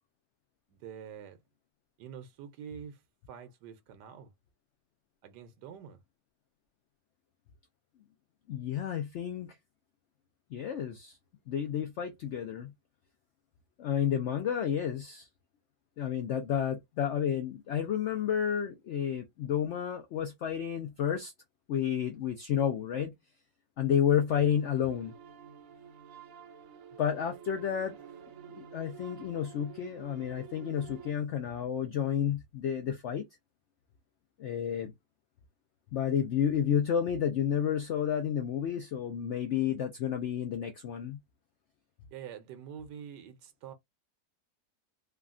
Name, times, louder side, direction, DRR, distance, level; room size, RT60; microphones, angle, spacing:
voice 1, 0.7-1.4 2.0-3.0 3.3-4.3 5.2-6.0 24.3-24.5 42.1-43.7, right 8 dB, 85° right, 1.3 m, -46 dB
voice 2, 8.5-9.5 10.5-11.2 11.5-12.7 13.8-15.3 16.0-21.3 21.7-23.1 23.8-25.1 27.0-28.0 28.5-33.3 34.4-34.9 35.9-41.2, left 9 dB, 90° left, 0.6 m, -31 dB
sound 1, 24.1-31.1, right 8 dB, 65° right, 0.8 m, -50 dB
3.4 x 2.2 x 2.4 m
omnidirectional pair, 1.8 m